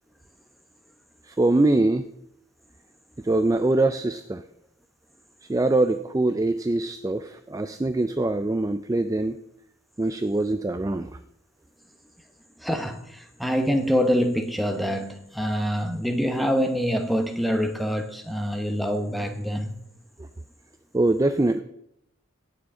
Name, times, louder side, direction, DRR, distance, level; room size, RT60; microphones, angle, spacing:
voice 1, 1.2-2.1 3.2-4.4 5.4-9.4 10.0-11.1 20.2-20.3 20.9-21.6, right 2 dB, 15° right, 10 dB, 0.3 m, -23 dB
voice 2, 12.6-19.7, equal, ahead, 5 dB, 0.8 m, -25 dB
17.5 x 7.2 x 3.7 m, 0.77 s
head